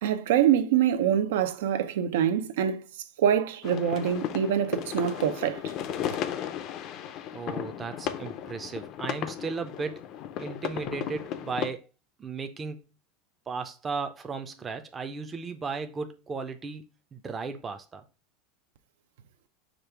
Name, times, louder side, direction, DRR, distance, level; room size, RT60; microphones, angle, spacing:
voice 1, 0.0-2.8 3.2-5.6, right 9 dB, 80° right, 0.6 m, -25 dB
sound 1, 3.6-11.7, left 10 dB, 40° left, 0.4 m, -35 dB
voice 2, 7.3-10.0 10.4-11.8 12.2-12.8 13.5-16.8 17.1-18.0, right 4 dB, 15° right, 0.5 m, -35 dB
5.1 x 2.4 x 4.4 m
supercardioid pair, 155°, 0 cm